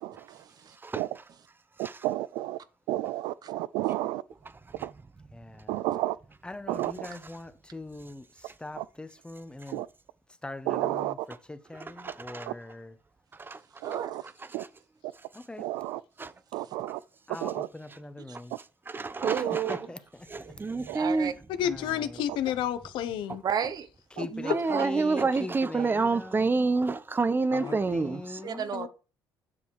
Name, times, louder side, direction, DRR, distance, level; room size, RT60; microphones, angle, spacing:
voice 1, 0.3-0.8 3.4-3.5 13.8-14.2 18.3-18.4 19.2-19.8 20.5-20.6 20.9-21.3 23.4-23.9 24.5-24.9 25.1-25.3 25.8-25.9 28.4-28.9, right 8 dB, 55° right, 1.1 m, -32 dB
voice 2, 1.8-2.6 2.9-4.2 4.8-4.9 5.7-6.2 6.7-7.1 8.8-8.9 9.7-9.9 10.7-11.1 12.5-12.6 13.8-14.2 14.5-14.6 15.6-16.0 16.5-17.0 17.4-17.7 19.2-19.6 20.9-21.0 24.7-24.8, right 16 dB, 85° right, 0.4 m, -31 dB
voice 3, 5.3-5.8 6.4-9.8 10.4-13.0 15.3-15.6 17.3-18.5 19.7-20.3 21.6-22.2 24.2-26.8 27.5-28.7, left 2 dB, 10° left, 1.2 m, -42 dB
voice 4, 11.7-12.5 13.4-13.6 14.6-14.7 16.2-16.3 18.9-19.8 20.3-21.3 24.3-28.4, right 3 dB, 25° right, 0.9 m, -28 dB
voice 5, 21.5-23.4 24.2-24.5 27.6-27.9 28.7-28.9, left 10 dB, 80° left, 1.1 m, -31 dB
8.7 x 7.0 x 4.8 m
supercardioid pair, 80°, 8 cm